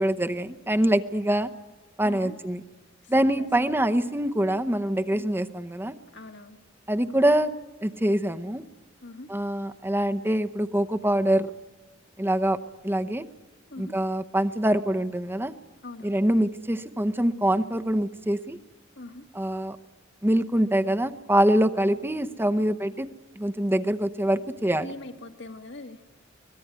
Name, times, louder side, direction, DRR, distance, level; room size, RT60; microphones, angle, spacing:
voice 1, 0.0-1.5 2.0-2.6 3.1-5.9 6.9-7.5 7.8-8.6 9.3-11.5 12.2-12.6 12.8-13.2 13.8-15.5 16.0-18.6 19.3-19.8 20.2-23.1 23.4-24.9, right 1 dB, 10° right, 8 dB, 0.8 m, -24 dB
voice 2, 2.0-2.4 3.0-3.9 5.1-5.3 6.1-6.6 9.0-9.3 13.7-13.9 15.8-16.2 19.0-19.2 24.8-26.0, left 2 dB, 70° left, 5 dB, 2.1 m, -42 dB
24.0 x 19.5 x 9.3 m, 1.2 s
head